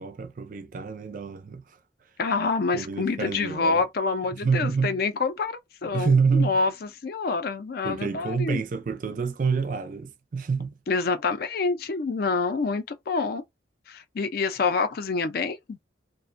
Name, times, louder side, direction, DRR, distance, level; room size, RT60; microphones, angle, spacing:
voice 1, 0.0-1.6 2.7-3.8 4.3-4.9 5.9-6.5 7.8-10.7, right 5 dB, 45° right, 0.4 m, -27 dB
voice 2, 2.2-8.6 10.9-13.4 13.9-15.8, left 4 dB, 55° left, 0.4 m, -27 dB
2.4 x 2.1 x 2.5 m
head